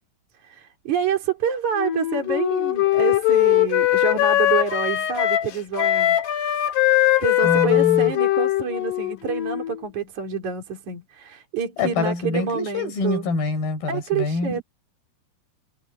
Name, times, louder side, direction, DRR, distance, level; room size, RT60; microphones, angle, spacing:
voice 1, 0.4-6.2 7.2-13.3 13.9-14.6, right 7 dB, 45° right, 4.8 m, -27 dB
Wind instrument woodwind instrument, 1.8-9.8, left 14 dB, 80° left, 4.4 m, -20 dB
voice 2, 7.4-8.1 11.8-14.6, left 3 dB, 60° left, 6.8 m, -25 dB
omnidirectional pair, 4.7 m